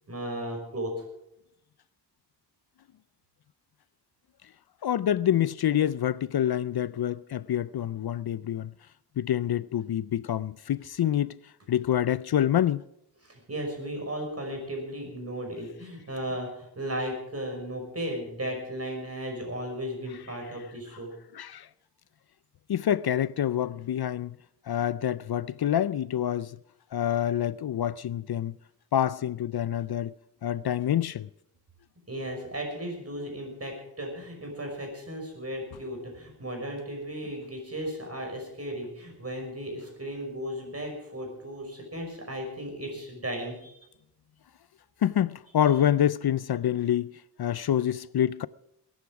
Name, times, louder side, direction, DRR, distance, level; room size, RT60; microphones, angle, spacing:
voice 1, 0.1-0.9 13.2-21.1 32.1-43.7, equal, 35° right, 5.8 m, -35 dB
voice 2, 4.8-8.7 9.2-11.4 11.7-12.8 21.3-21.7 22.7-24.4 24.7-26.6 26.9-28.5 28.9-30.1 30.4-31.3 45.0-47.1 47.4-48.5, left 10 dB, 65° left, 0.5 m, -26 dB
21.0 x 10.5 x 4.8 m
wide cardioid pair, 115°, 40 cm